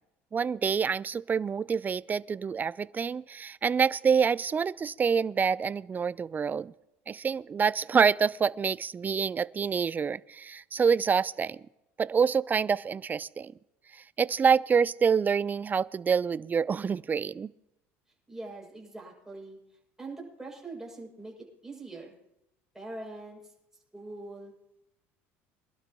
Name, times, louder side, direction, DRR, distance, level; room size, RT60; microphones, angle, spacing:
voice 1, 0.3-6.7 7.1-11.6 12.0-13.5 14.2-17.5, right 6 dB, 25° right, 0.4 m, -27 dB
voice 2, 18.3-19.6 20.0-22.1 22.7-23.5 23.9-24.5, right 2 dB, 5° right, 7.1 m, -43 dB
24.5 x 12.0 x 3.0 m
supercardioid pair, 85°, 7 cm